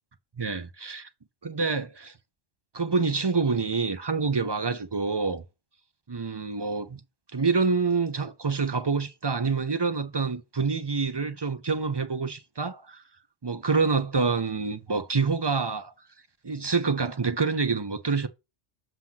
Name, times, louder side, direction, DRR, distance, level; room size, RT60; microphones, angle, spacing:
voice 1, 0.4-1.1 1.4-2.1 2.7-5.4 6.1-7.0 7.3-13.0 13.4-15.9 16.4-18.3, right 4 dB, 30° right, 0.5 m, -27 dB
7.4 x 3.0 x 5.6 m
omnidirectional pair, 1.3 m